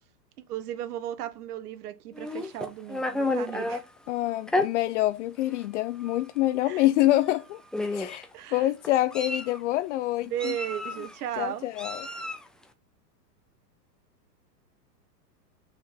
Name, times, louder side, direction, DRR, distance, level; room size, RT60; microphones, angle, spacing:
voice 1, 0.5-3.8 6.6-6.8 8.3-8.7 10.3-11.6, right 11 dB, 65° right, 1.5 m, -35 dB
Meow, 2.1-3.8 4.5-4.7 5.5-5.6 6.0-6.2 7.2-7.4 7.7-8.2 8.8-9.6 10.4-11.1 11.8-12.5, left 2 dB, ahead, 0.6 m, -30 dB
voice 2, 4.1-7.6 7.9-10.5 11.4-12.1, left 15 dB, 45° left, 0.6 m, -26 dB
6.4 x 5.8 x 5.7 m
hypercardioid pair, 135°, 50 cm